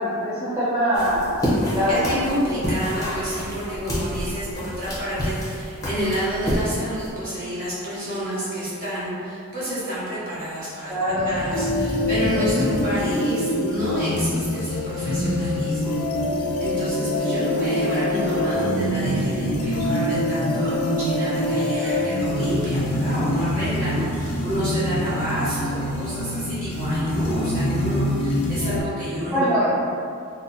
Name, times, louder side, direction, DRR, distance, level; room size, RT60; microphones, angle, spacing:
voice 1, 0.0-2.6 3.8-4.0 10.9-11.4 21.8-21.9 29.3-29.7, equal, 15° right, -12 dB, 0.4 m, -24 dB
sound 1, 0.9-7.1, equal, 15° left, 0.7 m, -28 dB
voice 2, 1.9-16.0 16.6-29.5, right 1 dB, 40° right, -11 dB, 1.1 m, -29 dB
sound 2, 11.0-13.2 15.0-15.8 18.3-21.7, equal, 80° right, 0.8 m, -30 dB
sound 3, 11.5-28.8, left 1 dB, 85° left, 0.4 m, -25 dB
2.7 x 2.2 x 3.9 m, 2.5 s
head